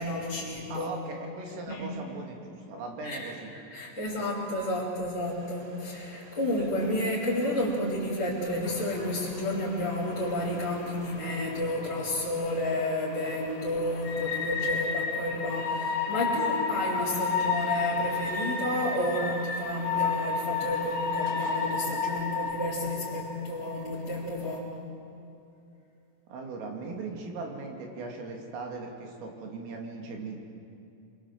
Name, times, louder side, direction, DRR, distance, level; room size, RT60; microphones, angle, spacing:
voice 1, 0.0-0.9 1.7-1.9 3.0-3.3 3.7-24.7, left 1 dB, 25° left, -9 dB, 4.1 m, -31 dB
voice 2, 0.7-3.5 26.3-30.4, right 3 dB, 85° right, 1 dB, 5.4 m, -39 dB
sound 1, 5.2-11.4, right 1 dB, 65° right, 7.2 m, -51 dB
sound 2, 8.6-24.6, left 5 dB, 60° left, 4.6 m, -33 dB
27.0 x 23.5 x 7.5 m, 2.6 s
omnidirectional pair, 5.7 m